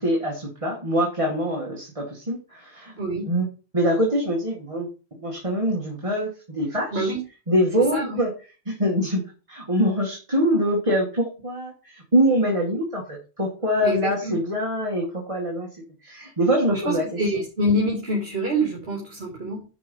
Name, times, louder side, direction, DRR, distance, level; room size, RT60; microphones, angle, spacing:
voice 1, 0.0-3.0 3.3-3.5 3.7-4.9 5.2-7.1 7.5-8.3 8.7-9.2 9.5-15.7 16.0-17.0, equal, 30° right, -1 dB, 2.1 m, -24 dB
voice 2, 3.0-3.3 6.9-7.2 7.8-8.2 13.8-14.4 16.7-19.6, equal, 65° right, -1 dB, 2.9 m, -26 dB
11.0 x 4.6 x 5.5 m, 0.34 s
omnidirectional pair, 1.1 m